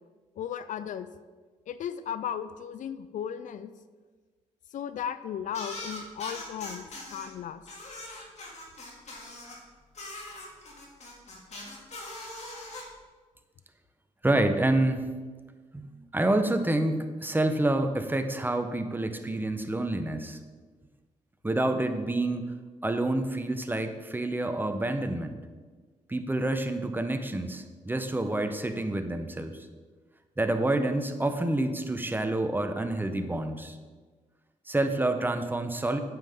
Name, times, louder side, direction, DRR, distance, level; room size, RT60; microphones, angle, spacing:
voice 1, 0.4-1.1 1.7-3.7 4.7-7.6 23.4-23.5, left 9 dB, 70° left, 13 dB, 0.4 m, -36 dB
sound 1, 5.5-7.3 7.7-9.6 9.9-12.8, left 2 dB, 55° left, 2.5 m, -41 dB
voice 2, 14.2-15.1 15.7-20.4 21.4-22.4 22.8-25.4 26.1-29.6 30.4-33.8 34.7-36.0, right 2 dB, 15° right, 8 dB, 0.9 m, -28 dB
9.0 x 7.5 x 3.7 m, 1.4 s
cardioid pair, 65°, 14 cm